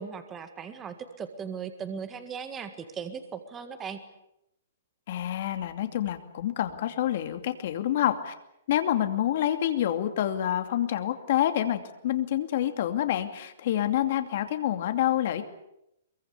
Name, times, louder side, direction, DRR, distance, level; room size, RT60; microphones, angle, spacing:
voice 1, 0.0-4.0, right 6 dB, 15° right, 8 dB, 1.8 m, -38 dB
voice 2, 5.1-8.3 8.7-15.4, left 11 dB, 45° left, 8 dB, 2.6 m, -27 dB
23.5 x 23.0 x 8.4 m, 0.81 s
hypercardioid pair, 170°, 0 cm